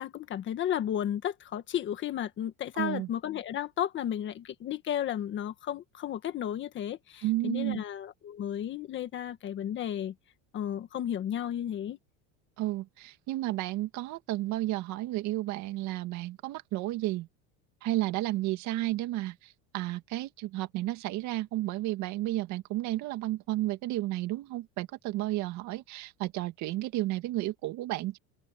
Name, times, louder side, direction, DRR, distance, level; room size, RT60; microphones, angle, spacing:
voice 1, 0.0-10.1 10.5-12.0, left 10 dB, 30° left, 1.4 m, -33 dB
voice 2, 2.8-3.1 7.2-7.8 12.6-17.3 17.8-28.2, right 16 dB, 50° right, 2.2 m, -32 dB
open air
cardioid pair, 170°, 36 cm